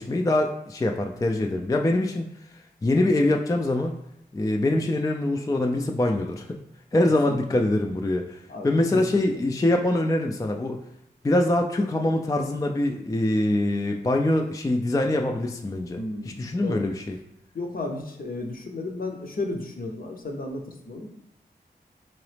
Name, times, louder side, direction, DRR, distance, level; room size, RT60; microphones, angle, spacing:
voice 1, 0.0-2.3 2.8-4.0 4.3-6.6 6.9-10.8 11.2-17.2, left 1 dB, 20° left, 3 dB, 0.3 m, -24 dB
voice 2, 7.3-7.6 8.5-9.2 16.0-16.9 17.5-21.1, left 2 dB, 50° left, 2 dB, 0.7 m, -34 dB
3.8 x 2.9 x 3.3 m, 0.76 s
cardioid pair, 40°, 18 cm